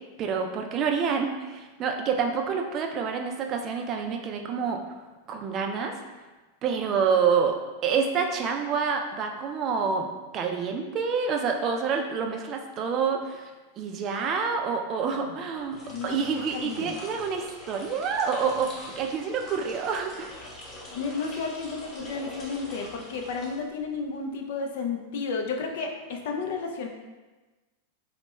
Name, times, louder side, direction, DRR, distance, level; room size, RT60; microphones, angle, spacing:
voice 1, 0.2-4.8 5.3-5.9 6.6-7.6 7.8-13.5 13.8-18.7 19.0-20.3, right 6 dB, 35° right, 3 dB, 0.3 m, -27 dB
sound 1, 15.6-24.0, left 1 dB, 30° left, 0.7 m, -44 dB
voice 2, 16.5-16.9 20.9-26.9, left 4 dB, 70° left, 3 dB, 0.4 m, -32 dB
4.1 x 2.1 x 2.2 m, 1.2 s
hypercardioid pair, 125°, 0 cm